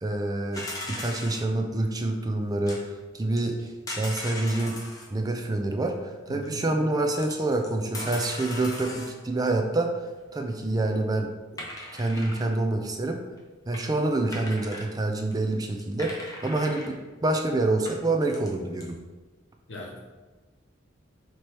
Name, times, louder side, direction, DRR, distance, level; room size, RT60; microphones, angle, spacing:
voice 1, 0.0-2.8 3.1-3.7 3.9-4.8 5.1-10.0 10.3-11.7 11.9-13.2 13.7-19.0, right 2 dB, 20° right, 4 dB, 0.4 m, -27 dB
sound 1, 0.5-1.5 2.7-2.8 3.4-5.1 6.4-6.5 7.2-9.2 11.6-12.6 13.3-13.4 13.7-13.8 14.3-14.9 15.3-15.4 15.6-16.9 17.5-17.6 17.9-18.5 18.8-18.9, left 1 dB, 20° left, 0.6 m, -38 dB
voice 2, 6.3-6.6 19.7-20.1, left 1 dB, 70° left, -1 dB, 0.9 m, -39 dB
4.5 x 2.9 x 3.3 m, 1.3 s
head